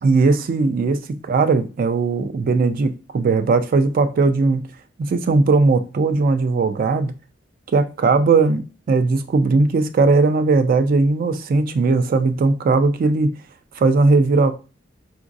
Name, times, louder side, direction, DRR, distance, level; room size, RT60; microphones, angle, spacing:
voice 1, 0.0-4.6 5.0-7.1 7.7-13.3 13.8-14.5, right 3 dB, 50° right, 0.3 m, -18 dB
3.8 x 2.5 x 2.5 m
head